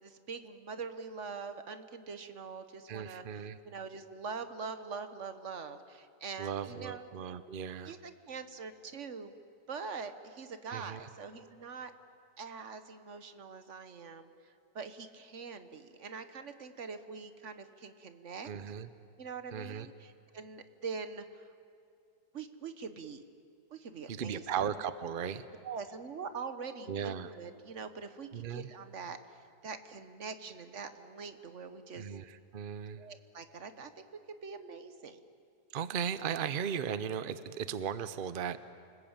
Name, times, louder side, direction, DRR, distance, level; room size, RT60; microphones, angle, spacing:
voice 1, 0.0-7.1 7.8-9.3 9.7-11.9 12.4-18.5 19.2-21.5 22.3-23.2 23.7-24.6 25.6-32.2 33.0-34.0 34.4-35.2, right 5 dB, 45° right, 10 dB, 1.4 m, -44 dB
voice 2, 2.9-3.6 6.4-7.9 10.7-11.1 18.4-18.9 19.5-19.9 24.1-25.5 26.9-27.3 28.3-28.7 32.0-33.0 35.7-38.6, right 8 dB, 65° right, 13 dB, 0.5 m, -37 dB
28.5 x 20.0 x 8.9 m, 2.5 s
omnidirectional pair, 1.9 m